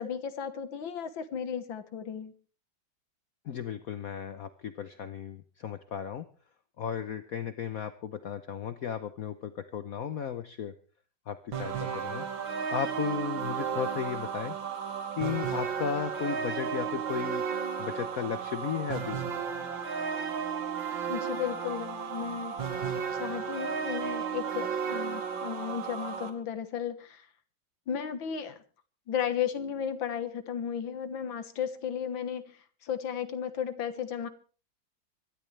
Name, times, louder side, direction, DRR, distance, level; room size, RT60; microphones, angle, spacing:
voice 1, 0.0-2.3 21.1-22.6 23.1-27.3 27.9-28.6 29.1-34.3, left 8 dB, 85° left, 10 dB, 2.1 m, -34 dB
voice 2, 3.4-6.3 6.8-10.7 11.3-12.3 12.7-14.5 15.1-17.4 17.8-19.2, left 8 dB, 55° left, 10 dB, 1.1 m, -35 dB
sound 1, 11.5-26.3, right 7 dB, 80° right, 2.5 m, -34 dB
25.0 x 12.5 x 3.3 m, 0.39 s
omnidirectional pair, 2.1 m